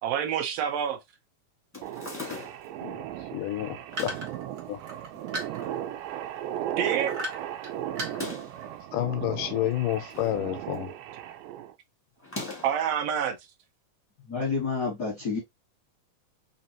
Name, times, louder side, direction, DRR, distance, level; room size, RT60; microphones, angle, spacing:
voice 1, 0.0-1.0 6.8-7.1 12.6-13.4, right 9 dB, 75° right, 1.5 m, -27 dB
sound 1, 1.7-2.8 3.8-4.4 5.1-5.8 6.2-6.3 6.4-6.5 8.0-8.6 9.7-10.4 10.7-11.1 12.2-12.9, left 3 dB, 10° left, 0.6 m, -40 dB
sound 2, 1.8-11.7, right 12 dB, 90° right, 2.2 m, -36 dB
voice 2, 2.8-4.1 4.7-4.8 8.9-10.9, left 13 dB, 80° left, 2.0 m, -30 dB
sound 3, 3.9-6.0 6.8-7.7 7.9-8.6, right 1 dB, 55° right, 1.0 m, -35 dB
voice 3, 14.3-15.4, left 4 dB, 60° left, 1.0 m, -29 dB
5.1 x 2.7 x 2.8 m
omnidirectional pair, 3.8 m